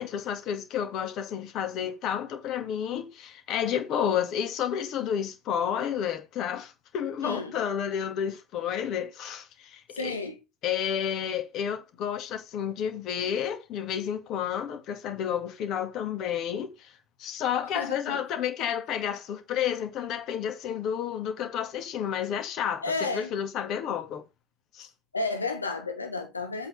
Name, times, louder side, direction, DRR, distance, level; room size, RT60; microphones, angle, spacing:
voice 1, 0.0-10.2 10.6-16.9 17.2-24.2 24.7-24.9, left 9 dB, 45° left, 2.3 m, -31 dB
voice 2, 7.2-7.6 9.9-10.4 17.7-18.2 22.8-23.3 25.1-26.7, left 3 dB, 90° left, 1.9 m, -32 dB
8.2 x 4.7 x 5.4 m
figure-of-eight pair, 80°, 0 cm